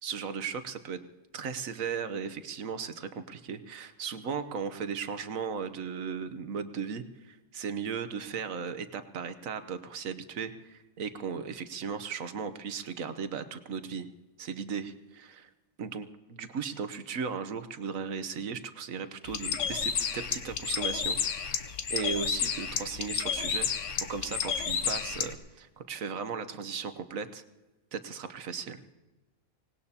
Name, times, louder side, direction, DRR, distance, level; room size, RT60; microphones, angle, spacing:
voice 1, 0.0-1.0 1.3-14.1 14.4-15.5 15.8-21.2 21.6-23.7 24.1-27.4 27.9-28.8, right 6 dB, 75° right, 10 dB, 1.3 m, -36 dB
Bird, 19.2-25.3, left 7 dB, 65° left, 1.2 m, -31 dB
25.0 x 19.0 x 2.8 m, 1.1 s
omnidirectional pair, 1.4 m